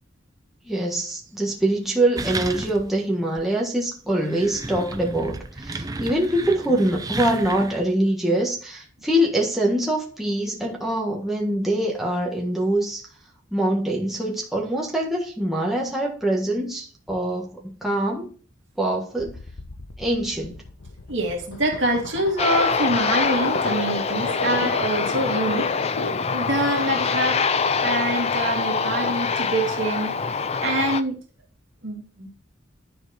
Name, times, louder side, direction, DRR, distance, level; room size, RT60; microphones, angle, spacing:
voice 1, 0.6-13.0 13.5-18.3 18.8-19.4 20.0-20.6, right 1 dB, ahead, 1.5 m, -24 dB
sound 1, 2.2-3.0 3.4-3.5 4.1-7.9, right 3 dB, 20° right, 0.5 m, -33 dB
sound 2, 19.2-26.4, left 3 dB, 80° left, 0.9 m, -34 dB
voice 2, 21.1-25.7 26.3-27.4 27.8-30.1 30.6-31.2 31.8-32.3, right 1 dB, 65° right, 2.1 m, -25 dB
Aircraft, 22.4-31.0, left 5 dB, 30° left, 0.4 m, -24 dB
11.0 x 4.6 x 4.3 m
head